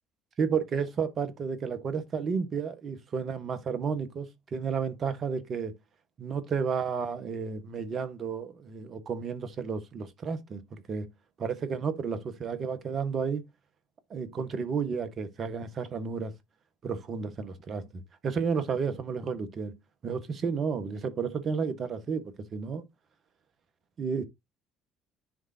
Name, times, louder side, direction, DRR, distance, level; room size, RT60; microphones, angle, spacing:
voice 1, 0.4-5.7 6.2-11.1 11.4-13.4 14.1-16.3 16.8-19.8 20.0-22.8 24.0-24.2, right 6 dB, 50° right, 1.6 m, -32 dB
10.0 x 3.7 x 2.9 m
hypercardioid pair, 60°, 0 cm